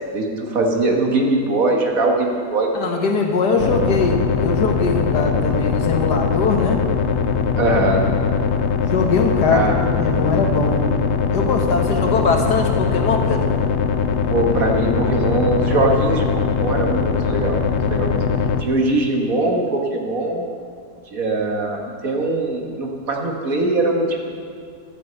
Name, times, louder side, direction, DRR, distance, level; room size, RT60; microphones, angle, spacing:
voice 1, 0.1-3.0 7.6-8.1 9.5-9.7 14.3-18.2 18.6-20.4 21.1-24.2, right 2 dB, 60° right, 1 dB, 1.9 m, -21 dB
voice 2, 2.7-6.8 8.8-10.9 11.3-13.6, left 4 dB, 85° left, 3 dB, 1.9 m, -21 dB
sound 1, 3.6-18.6, left 6 dB, 60° left, 0.8 m, -21 dB
13.0 x 8.5 x 8.0 m, 2.2 s
omnidirectional pair, 1.7 m